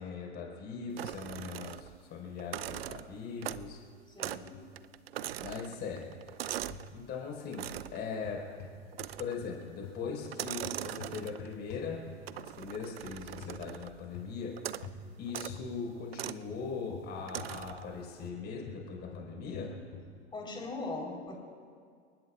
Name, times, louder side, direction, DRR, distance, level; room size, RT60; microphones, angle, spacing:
voice 1, 0.0-3.8 5.4-6.1 6.9-8.4 9.2-12.0 12.4-14.6 15.2-19.7, left 5 dB, 30° left, -1 dB, 5.2 m, -40 dB
sound 1, 1.0-2.0 2.4-3.8 4.2-4.5 4.8-6.9 7.5-8.0 8.9-9.5 10.3-11.6 12.3-14.0 14.6-14.9 15.3-15.6 16.1-16.4 17.3-17.9, right 12 dB, 60° right, 0.6 m, -41 dB
sound 2, 3.4-3.9 4.2-4.7 5.9-6.9 8.2-9.1 9.4-12.4 13.4-13.6 14.1-14.4 14.8-15.0 15.5-15.7 16.5-17.9 18.2-20.1, left 5 dB, 45° left, 3.7 m, -47 dB
voice 2, 4.1-4.6 20.3-21.4, left 3 dB, 15° left, -1 dB, 4.3 m, -39 dB
29.5 x 19.0 x 2.5 m, 2.1 s
figure-of-eight pair, 95°, 35 cm